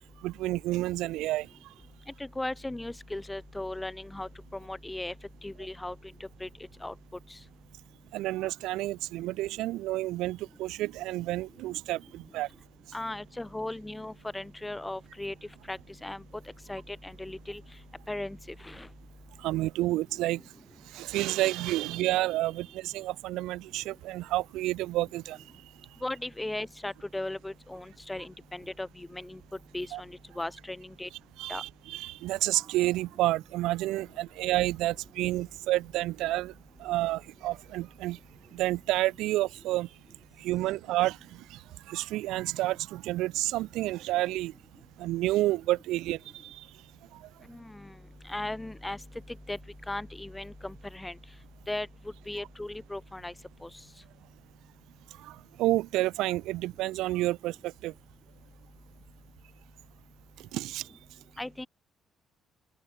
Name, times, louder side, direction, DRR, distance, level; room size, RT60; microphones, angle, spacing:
voice 1, 0.2-1.5 8.1-12.5 19.4-20.4 20.9-25.4 29.9-30.0 31.4-36.5 36.8-38.2 38.5-39.9 40.4-41.2 41.5-41.6 41.9-44.5 45.0-46.6 55.2-57.9 60.5-60.8, right 17 dB, 85° right, 2.0 m, -30 dB
voice 2, 2.2-5.1 5.4-5.9 6.2-6.5 6.8-6.9 7.3-7.4 12.9-15.3 15.7-16.2 16.7-17.6 18.1-18.4 18.6-18.9 26.0-29.4 29.7-31.1 31.5-31.6 47.5-47.9 48.2-49.0 49.5-49.6 49.9-51.2 51.7-51.9 52.3-53.3 53.6-53.7 61.4-61.7, left 1 dB, 10° left, 6.4 m, -37 dB
open air
cardioid pair, 100°, 0 cm